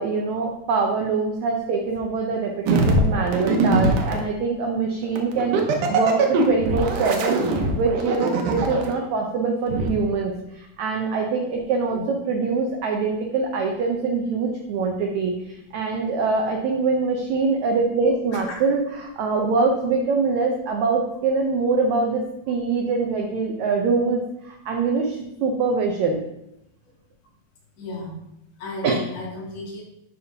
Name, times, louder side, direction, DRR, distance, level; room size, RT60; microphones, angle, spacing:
voice 1, 0.0-7.4 7.7-26.2 28.8-28.9, right 4 dB, 85° right, 2 dB, 1.6 m, -24 dB
sound 1, 2.7-4.2 5.2-8.9 9.7-9.9, right 3 dB, 70° right, 2.1 m, -21 dB
voice 2, 27.8-28.1 28.6-29.8, left 3 dB, 90° left, -5 dB, 4.1 m, -34 dB
11.5 x 5.1 x 2.8 m, 0.81 s
omnidirectional pair, 4.2 m